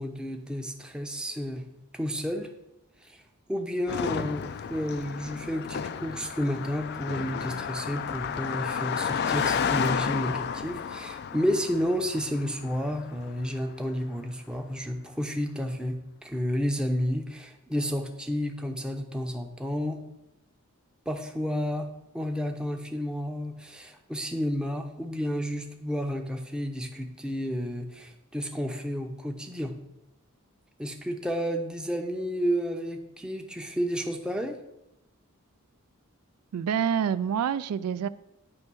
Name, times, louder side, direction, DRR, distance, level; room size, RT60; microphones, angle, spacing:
voice 1, 0.0-1.6 1.9-2.5 3.0-3.2 3.5-20.0 21.1-21.9 22.1-29.7 30.8-34.6, equal, 5° right, 3 dB, 0.6 m, -31 dB
Car passing by, 3.9-13.4, left 7 dB, 45° left, 0.3 m, -32 dB
voice 2, 36.5-38.1, right 8 dB, 85° right, 14 dB, 0.3 m, -27 dB
9.6 x 3.2 x 6.1 m, 0.90 s
head